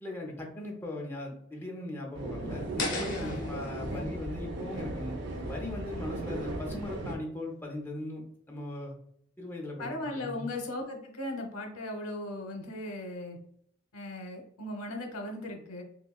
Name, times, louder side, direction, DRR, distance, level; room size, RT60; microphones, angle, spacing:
voice 1, 0.0-8.9 9.4-10.5, left 1 dB, 10° left, -1 dB, 0.6 m, -39 dB
sound 1, 2.1-7.2, right 2 dB, 55° right, 0.5 m, -37 dB
sound 2, 2.8-5.8, left 2 dB, 60° left, 1.3 m, -38 dB
voice 2, 3.2-3.6 3.9-4.1 9.8-13.4 13.9-15.8, left 1 dB, 90° left, 3 dB, 0.8 m, -38 dB
5.4 x 2.2 x 2.3 m, 0.69 s
head